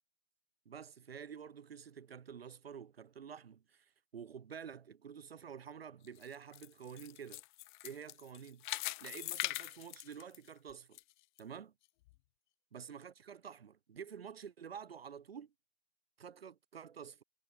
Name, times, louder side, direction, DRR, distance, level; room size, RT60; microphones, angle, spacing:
voice 1, 0.7-7.4 7.8-8.7 9.0-11.0 11.4-11.7 12.7-15.5 16.2-17.2, right 7 dB, 85° right, 5.5 m, -49 dB
sound 1, 6.0-11.0 11.4-11.5 12.1-12.2, left 20 dB, 55° left, 6.9 m, -42 dB
hypercardioid pair, 125°, 29 cm